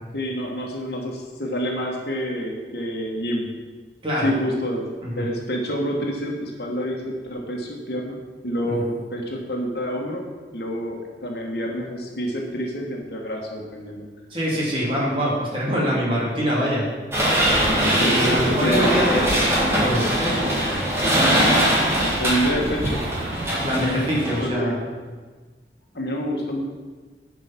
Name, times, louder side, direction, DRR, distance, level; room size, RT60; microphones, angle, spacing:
voice 1, 0.1-3.5 4.2-4.8 5.2-8.2 8.4-10.3 10.5-14.0 17.8-18.9 22.2-23.0 23.7-24.8 25.9-26.6, equal, 65° left, 0 dB, 1.6 m, -27 dB
voice 2, 4.0-4.3 5.0-5.3 8.6-8.8 14.3-16.9 18.0-20.3 23.6-24.8, equal, 30° right, -6 dB, 2.9 m, -24 dB
sound 1, 17.1-24.5, equal, 15° right, 1.9 m, -21 dB
sound 2, 18.2-23.8, right 1 dB, 70° right, 0.9 m, -34 dB
10.5 x 5.2 x 6.0 m, 1.4 s
head